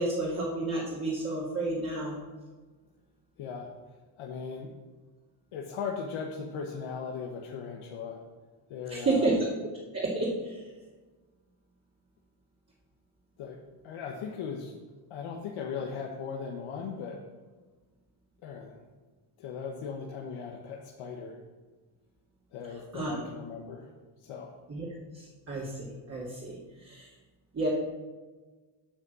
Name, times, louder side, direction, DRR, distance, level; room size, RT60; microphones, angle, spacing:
voice 1, 0.0-2.1 8.9-9.3 9.9-10.6 22.9-23.2 24.7-24.9 25.1-27.1 27.5-27.7, right 2 dB, 30° right, -6 dB, 2.2 m, -31 dB
voice 2, 3.4-3.7 4.2-4.7 5.5-8.2 8.7-9.3 13.4-13.6 13.8-14.7 15.1-17.2 18.4-18.8 19.4-21.4 22.5-23.9 24.2-24.5, left 6 dB, 90° left, 0 dB, 1.2 m, -38 dB
8.6 x 6.1 x 6.1 m, 1.3 s
cardioid pair, 120°, 48 cm